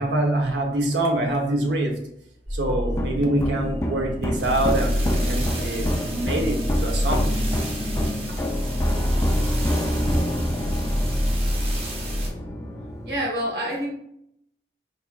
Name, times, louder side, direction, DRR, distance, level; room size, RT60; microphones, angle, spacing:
voice 1, 0.0-1.9 2.5-7.3, right 1 dB, 90° right, 1 dB, 0.8 m, -25 dB
sound 1, 2.5-12.3, equal, 35° right, 0.5 m, -27 dB
sound 2, 2.9-13.2, equal, 15° left, 0.3 m, -28 dB
voice 2, 13.0-13.9, equal, 60° right, -3 dB, 1.3 m, -27 dB
4.1 x 3.4 x 2.3 m, 0.74 s
head